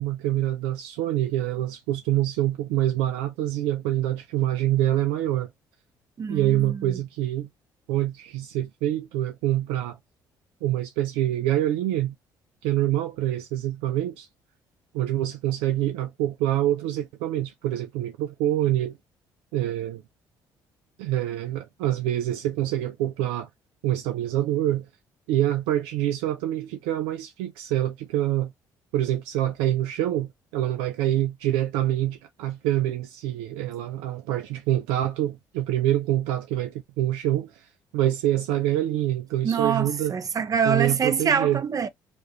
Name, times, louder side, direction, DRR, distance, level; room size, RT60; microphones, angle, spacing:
voice 1, 0.0-5.5 6.3-7.5 7.9-10.0 10.6-12.1 12.6-14.3 14.9-19.0 19.5-20.0 21.0-23.5 23.8-24.9 25.3-28.5 28.9-40.2 40.6-41.6, right 13 dB, 85° right, 0.4 m, -26 dB
voice 2, 6.2-7.0 39.4-41.9, right 6 dB, 40° right, 0.7 m, -25 dB
2.9 x 2.5 x 3.2 m
supercardioid pair, 65°, 9 cm